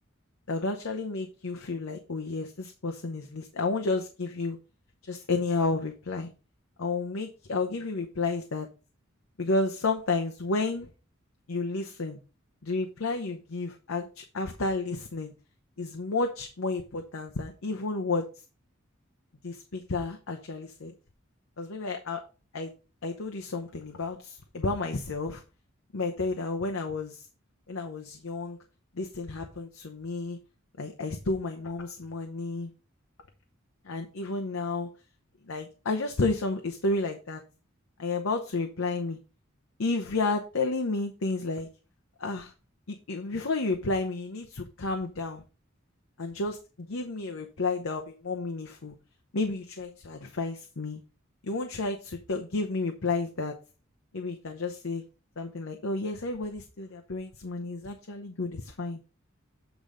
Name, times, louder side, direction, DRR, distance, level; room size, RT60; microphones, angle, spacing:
voice 1, 0.5-4.6 5.0-6.3 6.8-8.7 9.4-10.9 11.5-12.2 12.6-15.3 15.8-18.3 19.4-20.9 21.6-22.2 22.5-22.7 23.0-25.4 25.9-27.3 27.7-28.6 28.9-30.4 30.8-32.7 33.8-34.9 35.5-37.4 38.0-39.2 39.8-41.7 42.2-42.5 42.9-45.4 46.2-48.9 49.3-51.0 51.4-53.5 54.1-55.0 55.4-59.0, left 3 dB, 85° left, 3 dB, 0.8 m, -31 dB
8.3 x 4.0 x 4.9 m, 0.33 s
head